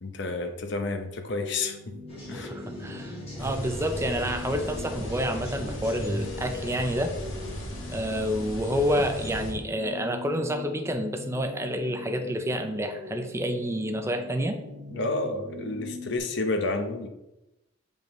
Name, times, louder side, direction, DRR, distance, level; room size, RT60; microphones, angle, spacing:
voice 1, 0.0-1.8 2.3-2.5 14.9-17.1, left 2 dB, 60° left, 5 dB, 0.8 m, -30 dB
sound 1, 1.4-16.2, left 2 dB, 80° right, 1.3 m, -42 dB
sound 2, 2.1-7.7, left 1 dB, 30° left, 2.2 m, -40 dB
voice 2, 2.3-7.1 7.9-14.6, equal, 15° right, 5 dB, 0.5 m, -29 dB
sound 3, 3.4-9.5, equal, 75° left, 1.9 m, -37 dB
6.9 x 5.3 x 3.1 m, 0.91 s
head